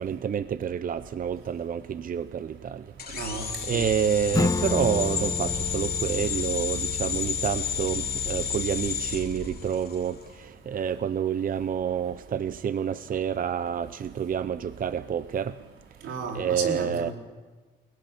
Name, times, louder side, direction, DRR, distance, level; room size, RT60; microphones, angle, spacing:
voice 1, 0.0-15.6 16.3-17.1, right 8 dB, 45° right, 13 dB, 0.7 m, -29 dB
sound 1, 3.0-10.1, left 6 dB, 50° left, 3.1 m, -31 dB
voice 2, 3.1-4.1 16.0-17.1, right 4 dB, 85° right, 1 dB, 4.6 m, -33 dB
Acoustic guitar / Strum, 4.3-9.6, left 3 dB, 15° left, 0.9 m, -32 dB
29.5 x 18.0 x 7.2 m, 1.4 s
cardioid pair, 90°, 20 cm